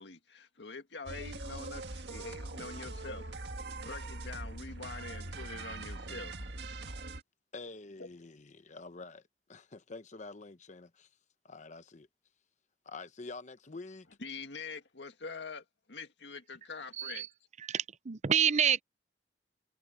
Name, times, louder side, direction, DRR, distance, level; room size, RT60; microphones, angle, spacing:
voice 1, 0.0-6.3 8.0-8.1 14.2-17.3, left 4 dB, 80° left, 1.9 m, -45 dB
sound 1, 1.1-7.2, right 2 dB, 75° right, 1.8 m, -42 dB
voice 2, 7.5-11.1 11.4-12.1 12.8-14.1, left 3 dB, 45° left, 0.9 m, -47 dB
voice 3, 17.0-17.3 17.7-18.8, right 8 dB, 40° right, 0.6 m, -28 dB
head